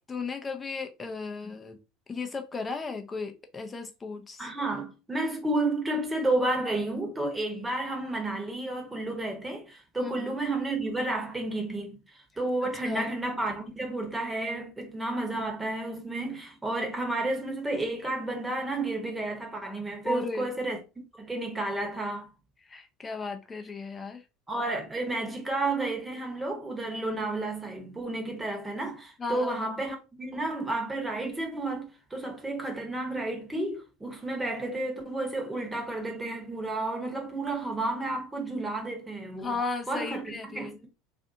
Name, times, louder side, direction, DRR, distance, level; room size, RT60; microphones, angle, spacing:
voice 1, 0.1-1.8 2.1-4.5 10.0-10.4 12.8-13.1 20.0-20.5 22.7-24.2 29.2-29.8 39.4-40.8, left 3 dB, 25° left, 0.6 m, -35 dB
voice 2, 4.4-20.8 21.2-22.3 24.5-39.6 39.9-40.9, right 2 dB, 15° right, 1.0 m, -31 dB
2.5 x 2.4 x 2.6 m
hypercardioid pair, 75°, 0 cm